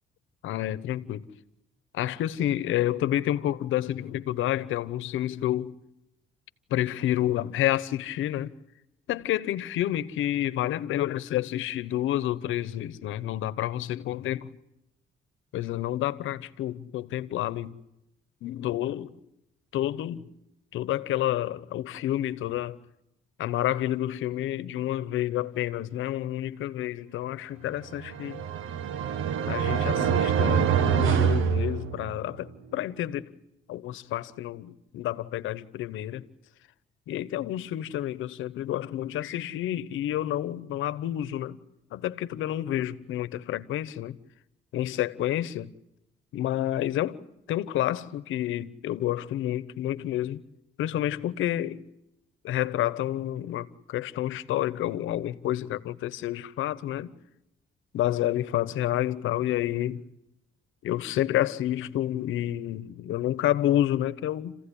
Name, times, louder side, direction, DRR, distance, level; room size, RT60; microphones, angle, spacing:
voice 1, 0.4-1.2 1.9-5.8 6.7-8.5 9.1-14.4 15.5-17.8 18.4-19.1 19.7-20.3 20.7-22.8 23.4-28.4 29.5-33.3 33.7-36.3 37.1-41.6 41.9-44.2 44.7-45.7 46.3-47.2 47.5-50.4 50.8-51.8 52.4-57.1 57.9-60.0 60.8-64.6, left 13 dB, 85° left, 1.1 m, -29 dB
sound 1, 27.9-32.4, right 8 dB, 85° right, 1.4 m, -25 dB
29.5 x 15.5 x 10.0 m
cardioid pair, 90°, 20 cm